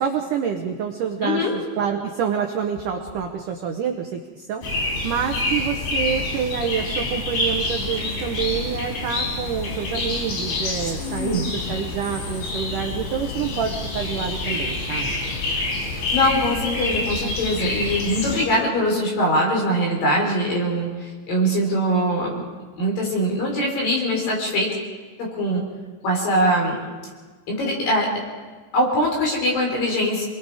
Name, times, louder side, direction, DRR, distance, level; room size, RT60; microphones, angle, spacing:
voice 1, 0.0-15.1, right 7 dB, 75° right, 3 dB, 1.9 m, -27 dB
voice 2, 1.2-1.5 11.0-11.5 15.9-22.4 22.8-24.7 25.2-25.6 26.0-26.8 27.5-28.1 28.7-30.2, equal, 50° left, -1 dB, 5.7 m, -22 dB
sound 1, 4.6-18.4, left 2 dB, 85° left, 5.8 m, -27 dB
28.5 x 21.0 x 4.9 m, 1.4 s
omnidirectional pair, 5.3 m